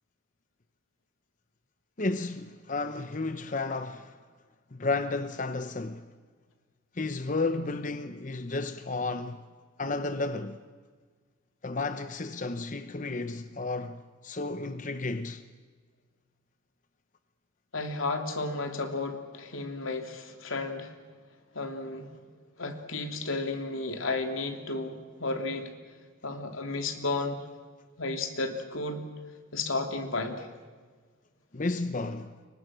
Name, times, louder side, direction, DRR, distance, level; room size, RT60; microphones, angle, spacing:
voice 1, 2.0-4.2 4.7-6.1 6.9-9.4 9.8-10.6 11.6-15.4 31.5-32.3, left 3 dB, 40° left, 0.8 m, -32 dB
voice 2, 17.7-20.9 21.5-22.1 22.6-25.7 26.2-27.4 28.0-29.0 29.5-30.5, left 3 dB, 85° left, 3.0 m, -33 dB
30.0 x 24.0 x 6.2 m
head